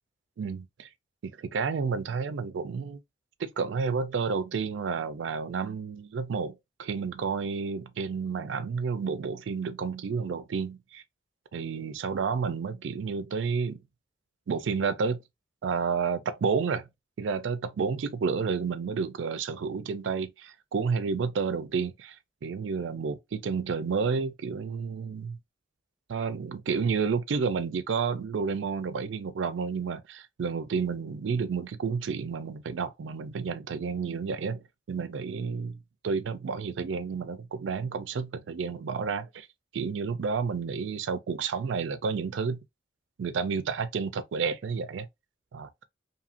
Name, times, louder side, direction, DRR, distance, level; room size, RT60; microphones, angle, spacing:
voice 1, 0.4-0.9 1.2-3.0 3.4-11.0 11.5-13.8 14.5-15.2 15.6-16.9 17.2-22.2 22.4-25.4 26.1-35.8 36.0-39.5 39.7-42.6 43.2-45.1 45.5-45.7, right 5 dB, 90° right, 0.4 m, -30 dB
2.8 x 2.5 x 2.8 m
head